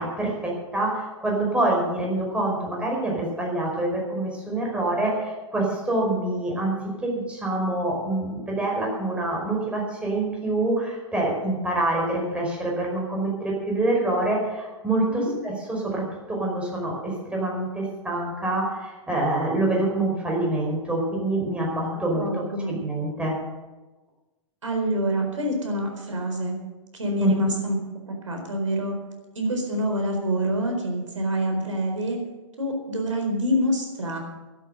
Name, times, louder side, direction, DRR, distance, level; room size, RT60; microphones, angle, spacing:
voice 1, 0.0-6.7 7.0-22.3 22.7-23.4 27.2-27.5, right 2 dB, 5° right, -2 dB, 5.2 m, -26 dB
voice 2, 22.1-22.8 24.6-26.6 26.9-27.8 28.3-29.0 29.3-32.2 32.6-34.2, equal, 75° right, 3 dB, 4.3 m, -26 dB
13.0 x 12.0 x 6.6 m, 1.2 s
figure-of-eight pair, 110°, 16 cm